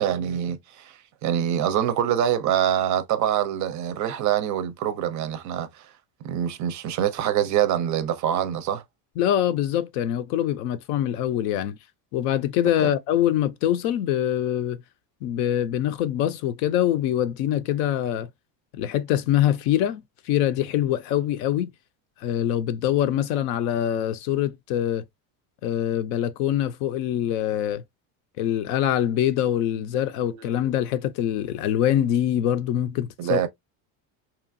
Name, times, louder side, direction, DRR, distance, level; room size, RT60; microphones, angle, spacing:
voice 1, 0.0-5.9 6.2-8.8 12.8-12.9 30.3-30.5 33.2-33.5, right 10 dB, 40° right, 0.4 m, -25 dB
voice 2, 9.2-11.8 12.1-14.8 15.2-18.3 18.7-21.7 22.2-25.0 25.6-27.8 28.4-33.4, left 11 dB, 80° left, 0.6 m, -24 dB
2.8 x 2.4 x 2.5 m
cardioid pair, 135°, 46 cm